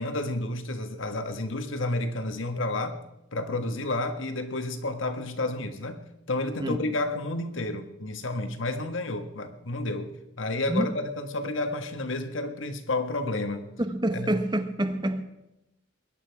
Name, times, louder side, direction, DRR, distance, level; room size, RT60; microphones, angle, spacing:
voice 1, 0.0-3.0 3.3-6.0 6.3-10.1 10.4-13.6 14.1-14.4, left 2 dB, 70° left, 8 dB, 1.6 m, -30 dB
voice 2, 13.8-15.2, right 1 dB, 20° right, 9 dB, 1.2 m, -27 dB
22.0 x 11.0 x 4.8 m, 0.90 s
head